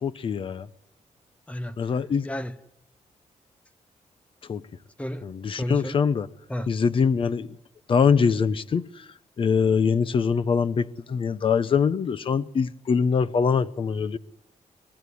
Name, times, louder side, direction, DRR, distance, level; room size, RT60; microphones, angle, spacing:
voice 1, 0.0-0.7 1.8-2.3 4.5-4.6 5.2-6.3 6.7-7.5 7.9-8.8 9.4-14.2, left 6 dB, 45° left, 0.9 m, -23 dB
voice 2, 2.2-2.6 5.0-5.2 5.6-6.0 6.5-6.7, equal, 10° left, 1.0 m, -32 dB
24.0 x 20.5 x 9.7 m
wide cardioid pair, 155°, 13 cm